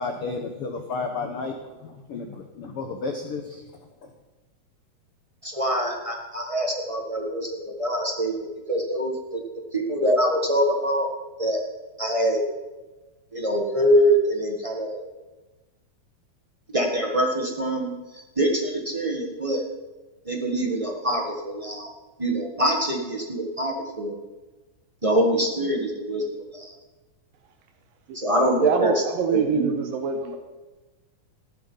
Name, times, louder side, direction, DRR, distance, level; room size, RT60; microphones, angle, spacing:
voice 1, 0.0-3.6, left 4 dB, 65° left, 4 dB, 1.5 m, -32 dB
voice 2, 5.4-9.4 9.7-11.1 11.4-11.6 12.0-12.4 13.3-15.0 16.7-17.9 18.4-19.6 20.2-21.9 22.2-24.2 25.0-26.7 28.1-29.0 29.3-29.7, right 1 dB, 40° right, 0 dB, 0.4 m, -24 dB
voice 3, 28.6-30.4, right 5 dB, 85° right, 6 dB, 2.8 m, -25 dB
15.0 x 12.0 x 5.6 m, 1.2 s
omnidirectional pair, 3.8 m